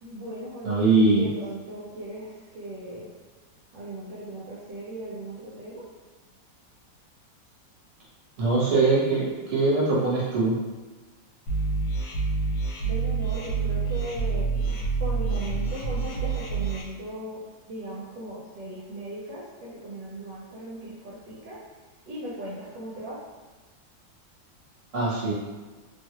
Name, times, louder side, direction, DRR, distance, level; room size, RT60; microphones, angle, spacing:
voice 1, 0.0-3.1 3.7-5.8 12.8-14.6 15.0-17.4 17.7-21.6 22.1-23.2, right 1 dB, 75° right, -6 dB, 1.3 m, -38 dB
voice 2, 0.6-1.3 8.4-10.5 24.9-25.3, right 3 dB, 50° right, -7 dB, 1.3 m, -22 dB
sound 1, 11.5-16.8, right 4 dB, 80° left, 1.3 m, -27 dB
3.1 x 2.4 x 2.8 m, 1.3 s
omnidirectional pair, 2.0 m